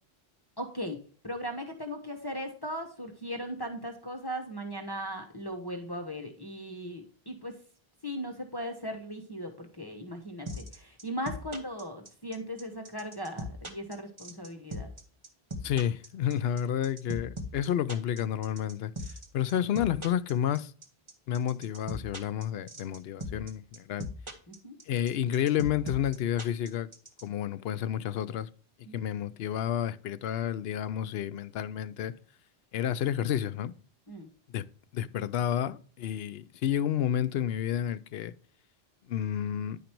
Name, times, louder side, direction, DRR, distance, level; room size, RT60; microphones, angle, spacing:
voice 1, 0.6-1.0 1.2-7.6 8.0-14.9 24.5-24.7 28.9-29.0 34.1-34.3, equal, 25° left, 1.2 m, -38 dB
sound 1, 10.5-27.2, left 1 dB, 30° right, 1.2 m, -38 dB
voice 2, 15.6-18.9 19.3-20.7 21.3-24.1 24.9-26.9 27.2-28.5 28.8-32.1 32.7-33.7 34.5-34.7 34.9-38.3 39.1-39.8, left 10 dB, 75° left, 0.8 m, -30 dB
10.0 x 5.2 x 4.5 m
omnidirectional pair, 1.1 m